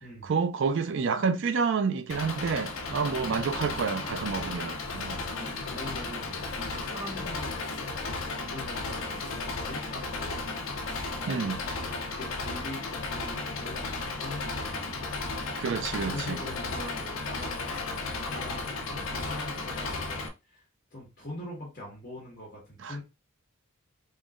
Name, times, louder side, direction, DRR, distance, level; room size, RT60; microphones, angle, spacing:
voice 1, 0.2-5.2 11.3-11.6 15.6-16.4 22.8-23.0, right 5 dB, 60° right, 0.4 m, -29 dB
Engine, 2.1-20.3, left 3 dB, 65° left, 0.6 m, -34 dB
voice 2, 5.2-7.6 7.9-15.1 16.0-20.6 20.9-23.0, left 1 dB, 40° left, 1.3 m, -43 dB
3.8 x 3.0 x 2.4 m
head